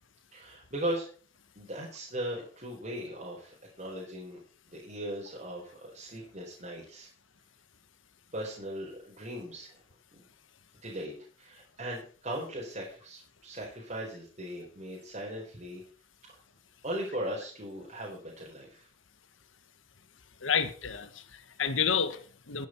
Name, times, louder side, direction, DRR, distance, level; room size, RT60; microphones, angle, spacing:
voice 1, 0.3-1.0 1.6-4.4 4.7-7.1 8.3-9.8 10.1-10.2 10.8-15.8 16.8-18.9, right 1 dB, 35° right, 4.5 m, -38 dB
voice 2, 20.4-22.7, left 7 dB, 85° left, 1.5 m, -30 dB
13.0 x 10.5 x 4.6 m
head